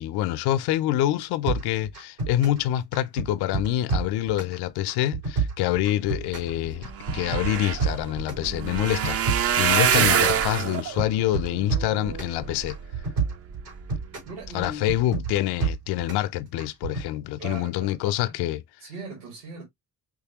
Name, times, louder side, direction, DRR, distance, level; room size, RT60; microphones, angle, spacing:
voice 1, 0.0-12.8 14.5-18.6, left 13 dB, 50° left, 0.7 m, -26 dB
sound 1, 1.5-2.6 2.9-4.5 4.9-6.5 6.8-8.4 8.8-10.4 10.7-12.4 12.7-14.3 14.6-16.3 16.6-17.1, right 4 dB, 85° right, 4.0 m, -29 dB
sound 2, 6.4-6.5 6.7-13.0 13.6-14.0 14.5-14.7 14.9-15.0, right 8 dB, 30° right, 0.6 m, -26 dB
voice 2, 14.3-14.9 17.4-18.3 18.8-19.6, right 2 dB, 70° right, 2.1 m, -39 dB
5.2 x 3.4 x 2.8 m
figure-of-eight pair, 50°, 50 cm